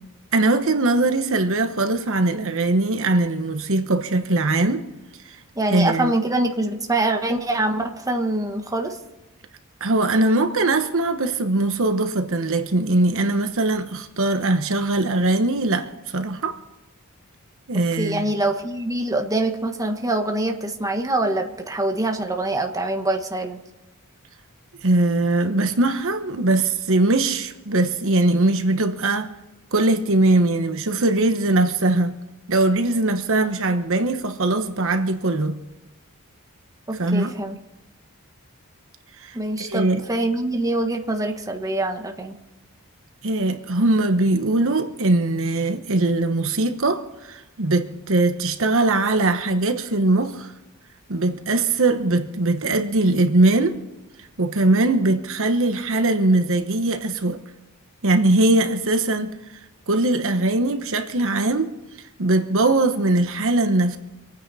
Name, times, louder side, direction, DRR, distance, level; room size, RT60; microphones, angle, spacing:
voice 1, 0.3-4.8 5.2-5.4 5.7-6.1 9.8-16.6 17.7-18.2 24.8-29.3 29.7-32.1 32.5-35.6 36.9-37.3 39.2-40.0 43.2-50.5 51.1-53.8 54.4-57.4 58.0-59.3 59.9-61.7 62.2-64.0, right 2 dB, 65° right, 1.1 m, -21 dB
voice 2, 5.6-8.9 18.0-23.6 36.9-37.6 39.3-42.4, right 2 dB, 15° right, 1.3 m, -24 dB
26.0 x 9.5 x 4.2 m
head